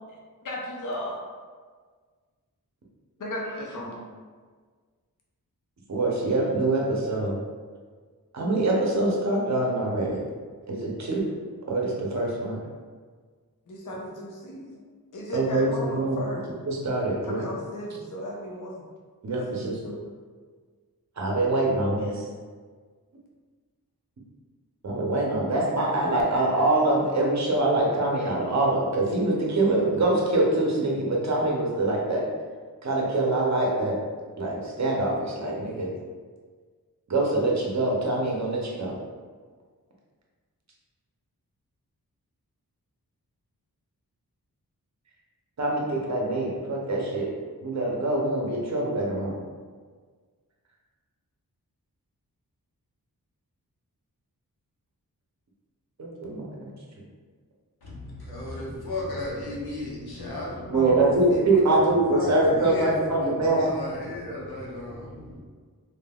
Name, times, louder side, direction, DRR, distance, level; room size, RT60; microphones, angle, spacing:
voice 1, 0.4-1.2 3.2-4.0 13.7-14.8 15.1-16.5 17.2-18.8 19.5-20.0 60.2-60.3 60.7-62.7, equal, 60° left, -2 dB, 0.6 m, -35 dB
voice 2, 5.9-7.4 8.3-10.2 10.7-11.3 11.7-12.5 15.3-16.2 16.7-17.4 19.2-19.8 21.2-22.3 24.8-32.2 32.8-34.0 34.4-35.9 37.1-39.0 45.6-47.3 47.6-49.3 56.0-56.7 60.7-63.7, right 2 dB, 45° right, -2 dB, 0.7 m, -24 dB
voice 3, 57.8-61.4 61.7-65.4, left 2 dB, 85° left, -5 dB, 0.8 m, -35 dB
3.5 x 2.4 x 2.3 m, 1.5 s
cardioid pair, 45°, 37 cm